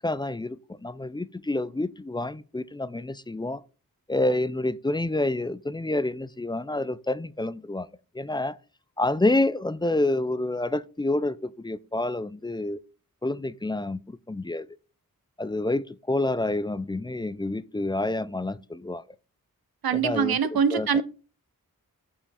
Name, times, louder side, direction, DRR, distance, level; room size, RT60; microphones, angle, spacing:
voice 1, 0.0-3.6 4.1-7.9 8.1-8.6 9.0-12.8 13.2-14.7 15.4-19.0 19.9-21.0, left 2 dB, 15° left, 0.4 m, -28 dB
voice 2, 19.8-21.0, right 7 dB, 80° right, 0.7 m, -23 dB
6.8 x 5.8 x 4.1 m
wide cardioid pair, 60°, 36 cm